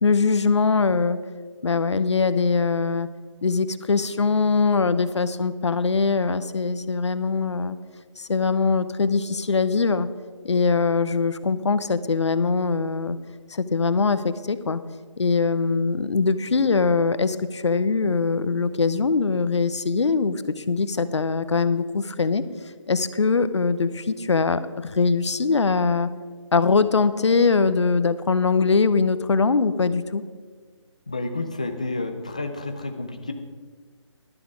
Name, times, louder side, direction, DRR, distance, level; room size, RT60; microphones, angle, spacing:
voice 1, 0.0-1.2 1.6-3.1 3.4-7.8 8.2-10.1 10.4-13.2 13.5-14.8 15.2-22.4 22.9-26.1 26.5-30.2, left 4 dB, 65° left, 13 dB, 0.8 m, -22 dB
voice 2, 31.1-33.3, left 2 dB, 15° left, 6 dB, 0.4 m, -30 dB
12.0 x 11.0 x 4.7 m, 1.5 s
figure-of-eight pair, 170°, 16 cm